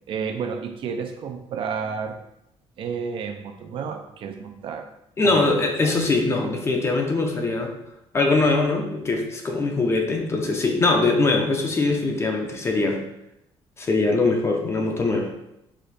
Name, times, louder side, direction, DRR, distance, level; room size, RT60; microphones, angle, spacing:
voice 1, 0.1-2.2 2.8-4.9 5.2-5.9, right 6 dB, 55° right, 5 dB, 0.5 m, -31 dB
voice 2, 5.2-7.7 8.1-13.0 13.8-15.3, left 3 dB, 25° left, 3 dB, 0.6 m, -22 dB
4.9 x 2.5 x 4.1 m, 0.84 s
cardioid pair, 150°, 10 cm